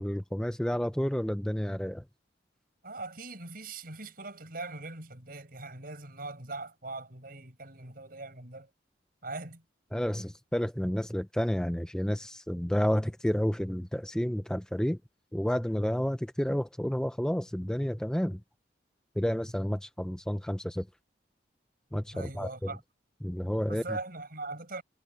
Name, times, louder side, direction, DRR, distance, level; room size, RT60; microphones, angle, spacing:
voice 1, 0.0-2.0 9.9-15.0 15.3-18.4 19.2-20.9 21.9-22.7 23.2-23.8, equal, 5° left, 0.5 m, -30 dB
voice 2, 2.8-8.7 9.2-9.6 22.1-22.8 23.7-24.8, right 3 dB, 50° right, 6.1 m, -41 dB
head